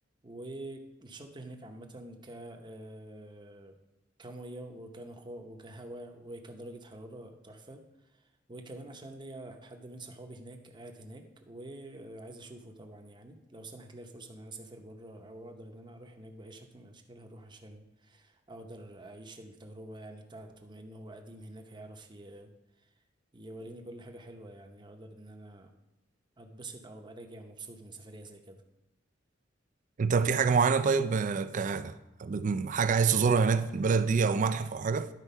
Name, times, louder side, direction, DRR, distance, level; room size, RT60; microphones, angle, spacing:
voice 1, 0.2-3.7 4.2-22.5 22.8-22.9 23.3-25.7 26.4-28.6, right 1 dB, 25° right, 0.8 m, -47 dB
voice 2, 30.0-31.9 32.2-35.1, right 5 dB, 40° right, 0.4 m, -26 dB
11.0 x 4.6 x 5.5 m
head